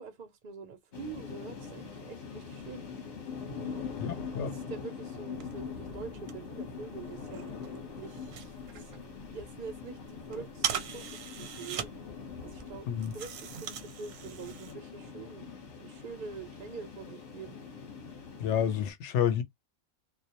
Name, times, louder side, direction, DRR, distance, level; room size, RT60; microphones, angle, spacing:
voice 1, 0.0-2.9 3.6-3.8 4.5-7.5 8.0-11.9 12.4-12.9 13.1-15.5 15.8-17.6, right 5 dB, 60° right, 0.5 m, -45 dB
sound 1, 0.9-18.9, left 5 dB, 40° left, 0.9 m, -43 dB
voice 2, 4.0-4.5 12.9-13.1 18.4-19.4, left 9 dB, 70° left, 0.8 m, -29 dB
sound 2, 5.3-14.7, right 8 dB, 85° right, 1.0 m, -41 dB
2.2 x 2.1 x 2.7 m
omnidirectional pair, 1.3 m